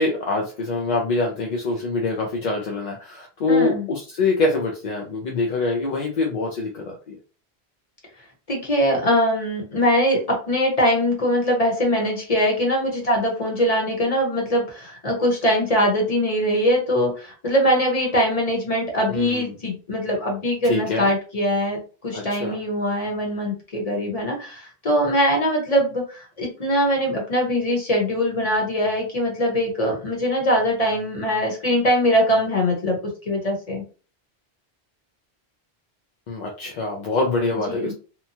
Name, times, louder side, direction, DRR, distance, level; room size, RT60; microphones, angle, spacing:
voice 1, 0.0-7.2 19.1-19.5 20.6-21.1 22.1-22.6 36.3-37.9, left 3 dB, 55° left, 0 dB, 0.6 m, -24 dB
voice 2, 3.5-3.8 8.5-33.8 37.5-37.9, equal, 35° left, 0 dB, 1.1 m, -22 dB
2.9 x 2.2 x 2.7 m, 0.36 s
omnidirectional pair, 1.1 m